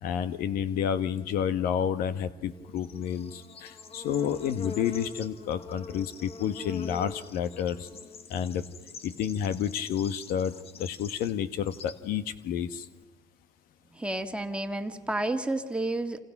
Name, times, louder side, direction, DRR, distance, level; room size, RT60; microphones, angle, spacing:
voice 1, 0.0-7.9 8.3-8.6 9.0-12.9, left 8 dB, 70° left, 12 dB, 1.4 m, -30 dB
Bird / Insect, 2.4-13.0, left 4 dB, 40° left, 1.8 m, -44 dB
voice 2, 13.9-16.2, right 2 dB, 5° right, 6 dB, 2.1 m, -31 dB
28.0 x 27.5 x 6.1 m, 1.2 s
supercardioid pair, 95°, 16 cm